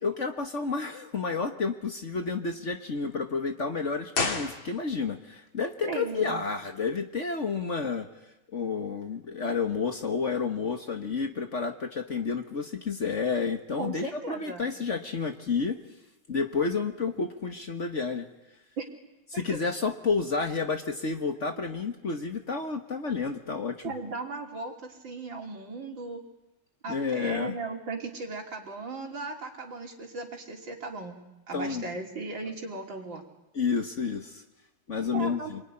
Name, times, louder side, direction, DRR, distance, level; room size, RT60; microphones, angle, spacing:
voice 1, 0.0-8.1 8.5-15.8 16.3-18.3 19.3-23.9 26.9-27.6 31.5-31.9 33.5-34.4 34.9-35.6, left 5 dB, 40° left, 6 dB, 1.5 m, -30 dB
sound 1, 4.1-5.2 5.5-5.6, left 4 dB, 80° left, 3.5 m, -31 dB
voice 2, 5.8-6.4 13.8-14.6 18.8-18.9 19.3-19.6 23.8-26.2 26.8-31.2 31.5-33.3 35.0-35.5, right 3 dB, 70° right, 1 dB, 4.1 m, -37 dB
27.0 x 21.0 x 9.9 m, 0.99 s
omnidirectional pair, 2.1 m